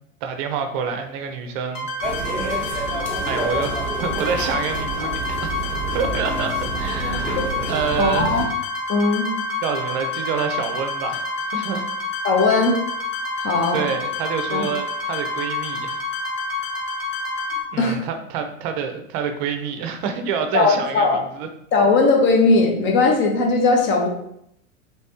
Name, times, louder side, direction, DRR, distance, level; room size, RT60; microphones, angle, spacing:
voice 1, 0.2-1.9 2.6-3.0 3.3-5.5 5.9-7.4 7.7-8.5 9.6-11.2 11.5-11.8 13.7-16.0 17.7-21.5, right 6 dB, 40° right, 6 dB, 0.6 m, -27 dB
sound 1, 1.7-17.6, left 3 dB, 45° left, 1.2 m, -28 dB
sound 2, 2.0-8.5, right 2 dB, 5° left, 1.1 m, -29 dB
voice 2, 8.0-8.5 8.9-9.3 12.2-12.8 13.4-13.8 14.5-14.7 17.8-18.1 20.5-21.2 21.7-24.1, left 3 dB, 30° left, 1 dB, 0.9 m, -18 dB
3.2 x 3.2 x 2.9 m, 0.74 s
figure-of-eight pair, 95°, 39 cm